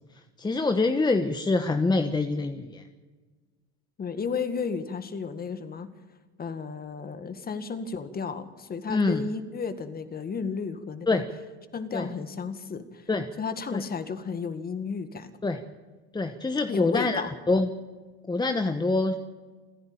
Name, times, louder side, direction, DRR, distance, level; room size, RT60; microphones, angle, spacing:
voice 1, 0.4-2.8 8.9-9.2 11.1-11.3 11.9-12.1 13.1-13.3 13.7-13.8 15.4-15.6 16.1-17.2 17.5-17.7 18.3-19.2, left 3 dB, 15° left, 8 dB, 1.2 m, -25 dB
voice 2, 4.0-5.9 6.4-11.2 11.7-13.1 13.4-15.3 16.7-17.3, left 5 dB, 30° left, 10 dB, 2.0 m, -33 dB
28.5 x 10.5 x 8.7 m, 1.4 s
supercardioid pair, 100°, 32 cm